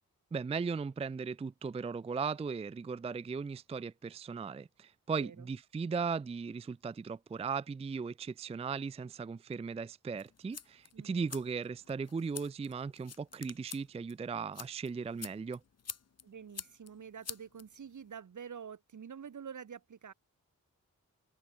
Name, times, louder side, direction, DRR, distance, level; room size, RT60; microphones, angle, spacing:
voice 1, 0.3-15.6, right 5 dB, 20° right, 0.4 m, -37 dB
voice 2, 5.2-5.5 10.9-11.3 16.2-20.1, right 7 dB, 70° right, 1.8 m, -47 dB
sound 1, 10.2-18.1, left 6 dB, 55° left, 1.3 m, -49 dB
wide cardioid pair, 105°, 31 cm